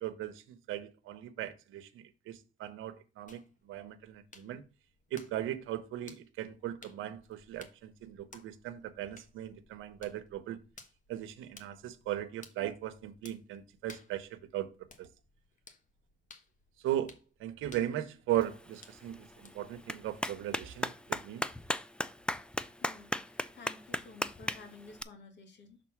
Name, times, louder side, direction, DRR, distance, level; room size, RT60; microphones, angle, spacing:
voice 1, 0.0-4.6 5.1-10.6 11.1-14.7 15.0-15.1 16.8-17.1 17.4-21.4, right 12 dB, 90° right, 0.8 m, -38 dB
sound 1, 3.3-20.7, left 4 dB, 40° left, 1.3 m, -59 dB
Clapping, 18.4-25.0, left 1 dB, 5° left, 0.4 m, -38 dB
voice 2, 22.8-25.8, left 4 dB, 60° left, 2.0 m, -52 dB
6.1 x 3.8 x 5.8 m
cardioid pair, 90°, 20 cm